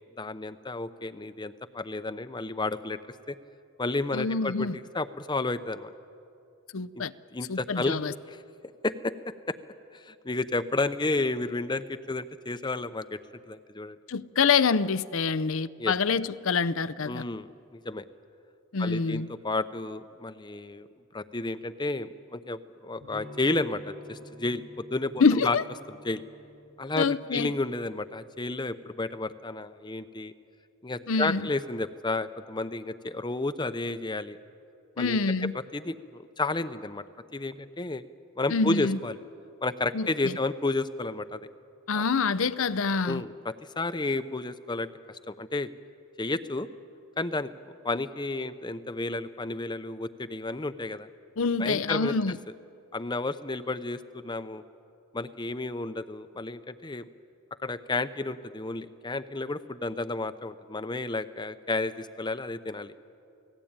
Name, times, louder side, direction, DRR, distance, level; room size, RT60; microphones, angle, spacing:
voice 1, 0.2-3.0 3.3-3.4 3.8-5.9 6.9-7.0 7.3-8.0 8.3-8.4 8.8-9.1 9.5-9.6 9.9-13.2 13.5-14.0 15.8-15.9 17.1-18.1 18.8-20.9 21.1-25.6 25.9-26.2 26.8-30.3 30.8-34.4 35.0-35.2 35.5-37.0 37.3-38.0 38.4-39.2 39.6-41.5 41.9-42.0 43.0-45.7 46.2-46.7 47.2-47.5 47.8-51.1 51.6-52.1 52.9-54.6 55.1-57.1 57.6-62.9, left 2 dB, 20° left, 0.7 m, -32 dB
voice 2, 4.1-4.8 6.7-7.1 7.5-8.1 14.1-17.2 18.7-19.3 25.2-25.6 27.0-27.5 31.1-31.4 35.0-35.5 38.5-39.0 39.9-40.3 41.9-43.2 51.4-52.4, left 5 dB, 65° left, 0.6 m, -26 dB
Electric guitar / Strum, 23.0-28.7, equal, 70° right, 8.0 m, -50 dB
29.0 x 18.0 x 8.9 m
head